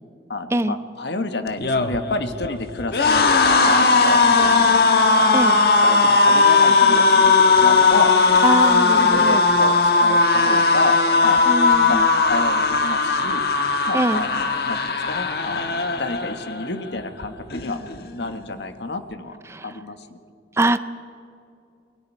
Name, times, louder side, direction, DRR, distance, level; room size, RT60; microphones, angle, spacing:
voice 1, 0.3-3.3 3.6-4.7 5.2-5.5 5.8-8.1 8.9-11.0 11.2-11.5 11.8-13.4 13.9-17.8 18.1-19.4 19.6-20.2, left 2 dB, 80° left, 8 dB, 1.4 m, -29 dB
sound 1, 1.5-16.7 17.0-17.3 17.5-18.3, left 4 dB, 60° left, 1.3 m, -17 dB
voice 2, 8.4-9.4 11.5-12.1 13.9-14.2 19.5-19.8 20.5-20.8, right 1 dB, 15° right, 13 dB, 0.5 m, -22 dB
28.5 x 21.5 x 4.7 m, 2.6 s
head